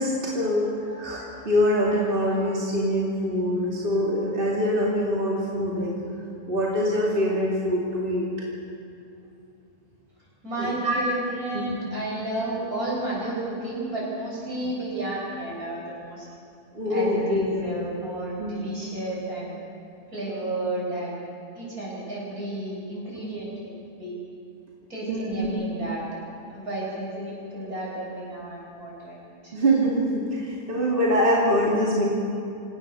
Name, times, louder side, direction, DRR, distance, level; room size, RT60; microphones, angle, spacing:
voice 1, 0.0-6.0 6.5-8.3 10.6-11.0 11.5-11.8 16.7-17.8 18.4-18.7 25.1-25.9 29.5-32.0, equal, 35° right, -4 dB, 2.8 m, -24 dB
voice 2, 10.4-16.3 16.9-19.5 20.1-21.2 21.5-23.7 24.0-24.2 24.9-26.0 26.5-29.2 29.4-29.5, right 1 dB, 65° right, -6 dB, 8.6 m, -32 dB
26.5 x 18.0 x 6.9 m, 2.6 s
omnidirectional pair, 1.6 m